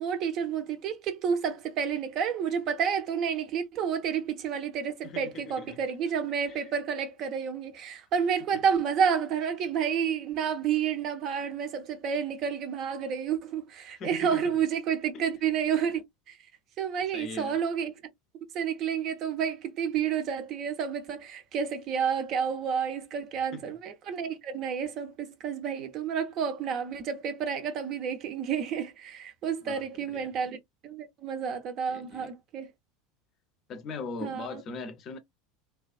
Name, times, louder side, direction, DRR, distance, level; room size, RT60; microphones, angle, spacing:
voice 1, 0.0-16.4 16.8-17.9 18.5-30.6 30.8-32.7 34.2-34.6, right 7 dB, 45° right, 0.6 m, -30 dB
voice 2, 5.0-5.8 6.5-6.6 13.9-14.4 15.1-15.2 17.1-17.6 23.5-23.7 29.6-30.3 31.9-32.3 33.7-35.2, left 4 dB, 40° left, 0.5 m, -40 dB
2.3 x 2.2 x 2.4 m
figure-of-eight pair, 75°, 0 cm